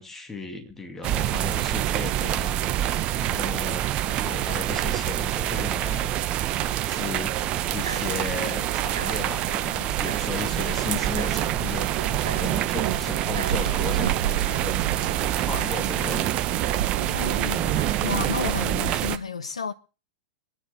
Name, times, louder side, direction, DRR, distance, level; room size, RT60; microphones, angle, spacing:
voice 1, 0.0-2.6 3.1-6.1 6.6-7.3 7.7-11.9 12.2-14.9 15.4-16.4, left 4 dB, 10° left, 2.3 m, -35 dB
sound 1, 1.0-19.2, right 13 dB, 35° right, 1.0 m, -26 dB
sound 2, 7.8-19.0, right 9 dB, 70° right, 1.0 m, -33 dB
voice 2, 17.0-19.7, left 5 dB, 75° left, 1.1 m, -32 dB
26.0 x 10.0 x 3.3 m
figure-of-eight pair, 95°, 3 cm